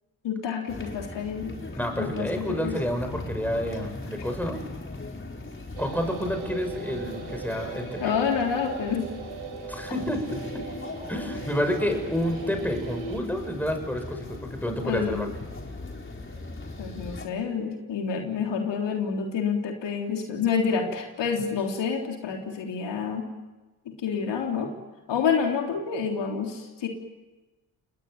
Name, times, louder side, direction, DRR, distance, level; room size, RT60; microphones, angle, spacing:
voice 1, 0.2-1.6 2.0-2.7 8.0-9.1 14.1-14.2 14.8-15.3 16.8-23.3 24.0-24.7 25.1-26.9, left 6 dB, 70° left, 2 dB, 3.6 m, -28 dB
sound 1, 0.7-17.3, left 2 dB, 25° left, 5.1 m, -39 dB
voice 2, 1.8-4.6 5.8-8.1 9.7-10.6 11.1-15.3, equal, 5° left, 5 dB, 6.9 m, -29 dB
sound 2, 5.8-13.2, right 5 dB, 85° right, 3.3 m, -39 dB
28.0 x 20.5 x 9.4 m, 1.2 s
hypercardioid pair, 45°, 44 cm